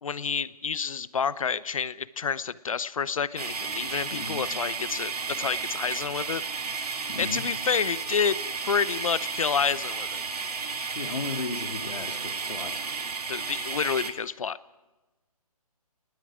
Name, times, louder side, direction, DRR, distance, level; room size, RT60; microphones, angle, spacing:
voice 1, 0.0-5.1 5.4-10.2 13.3-14.6, left 6 dB, 60° left, 18 dB, 0.8 m, -29 dB
sound 1, 3.4-14.1, right 5 dB, 80° right, 2.3 m, -33 dB
voice 2, 4.1-4.5 7.1-7.4 10.9-12.9, left 3 dB, 90° left, 4 dB, 2.7 m, -35 dB
28.5 x 19.5 x 5.0 m, 1.1 s
hypercardioid pair, 170°, 20 cm